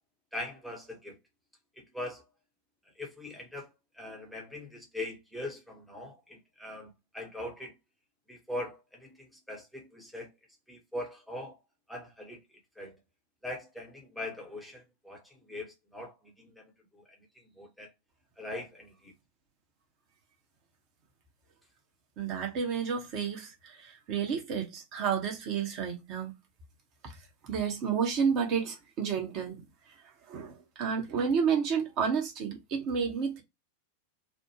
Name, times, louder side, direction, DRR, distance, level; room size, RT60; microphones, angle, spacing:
voice 1, 0.3-1.2 1.9-2.2 3.0-3.7 3.9-7.7 8.3-10.3 10.7-11.6 11.9-12.4 12.8-13.0 13.4-17.0 17.6-17.9 18.4-19.1, left 1 dB, ahead, 0.8 m, -41 dB
voice 2, 22.2-26.3 27.0-27.1 27.4-29.6 30.3-33.4, right 6 dB, 40° right, 0.9 m, -31 dB
3.2 x 2.1 x 2.8 m
figure-of-eight pair, 90°, 0 cm